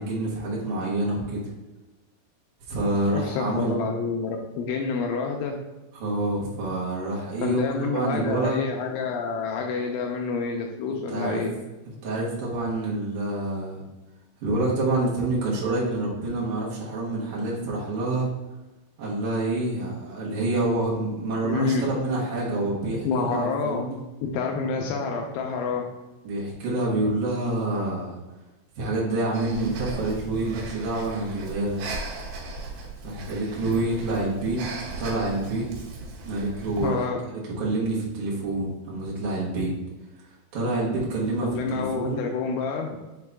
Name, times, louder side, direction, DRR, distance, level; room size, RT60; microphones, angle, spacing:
voice 1, 0.0-1.4 2.7-3.8 5.9-8.6 11.1-11.4 12.0-13.8 14.4-18.3 19.0-23.9 26.2-28.2 28.8-31.8 33.0-35.7 36.2-39.7 40.5-42.2, right 2 dB, 85° right, -5 dB, 1.7 m, -27 dB
voice 2, 3.1-5.6 7.4-11.5 21.4-21.8 23.0-23.9 24.2-25.9 36.8-37.2 41.4-42.9, left 5 dB, 85° left, 1 dB, 2.7 m, -28 dB
Breathing, 29.3-37.0, right 3 dB, 70° right, 2.7 m, -37 dB
7.2 x 4.0 x 3.5 m, 1.1 s
omnidirectional pair, 5.9 m